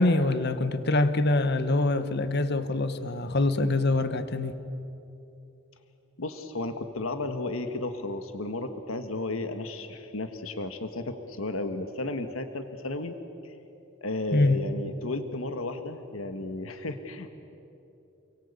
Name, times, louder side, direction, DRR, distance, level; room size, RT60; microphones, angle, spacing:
voice 1, 0.0-4.5 14.3-14.6, left 2 dB, 55° left, 11 dB, 1.3 m, -24 dB
voice 2, 6.2-13.1 13.4-13.6 14.0-17.3, left 2 dB, 90° left, 8 dB, 1.5 m, -33 dB
29.5 x 23.0 x 8.3 m, 2.9 s
head